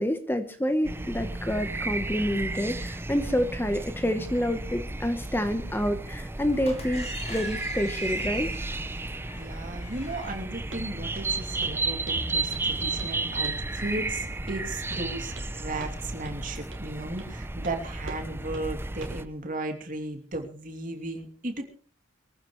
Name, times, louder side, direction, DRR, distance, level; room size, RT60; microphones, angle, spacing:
voice 1, 0.0-8.5 13.8-13.9, equal, 10° left, 8 dB, 1.0 m, -28 dB
sound 1, 0.8-19.2, right 2 dB, 10° right, 0.6 m, -33 dB
sound 2, 6.5-10.4, left 3 dB, 30° left, 3.6 m, -45 dB
voice 2, 9.3-21.6, right 2 dB, 40° right, 4 dB, 2.8 m, -35 dB
Walk footsteps, 10.7-10.9 11.1-11.4 11.6-11.8 12.1-12.7 13.0-13.2 13.4-13.7 14.5-14.6 14.9-15.5 15.8-16.0 16.2-16.4 16.7-16.9 17.2-17.3 17.6-17.8 18.1-18.2 18.5-18.7 19.0-19.2, right 2 dB, 65° right, 3.0 m, -44 dB
23.0 x 15.0 x 3.2 m, 0.42 s
head